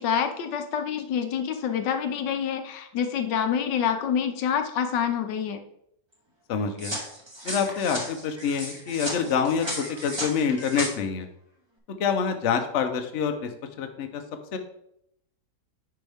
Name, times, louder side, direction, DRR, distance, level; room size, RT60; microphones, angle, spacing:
voice 1, 0.0-5.6, left 8 dB, 90° left, 7 dB, 1.5 m, -27 dB
voice 2, 6.5-6.9 7.4-11.3 12.0-13.5 13.8-14.2 14.5-14.6, left 6 dB, 50° left, 6 dB, 1.0 m, -26 dB
sound 1, 6.8-10.9, right 1 dB, 15° right, 1.4 m, -34 dB
9.4 x 5.4 x 3.5 m, 0.75 s
omnidirectional pair, 1.8 m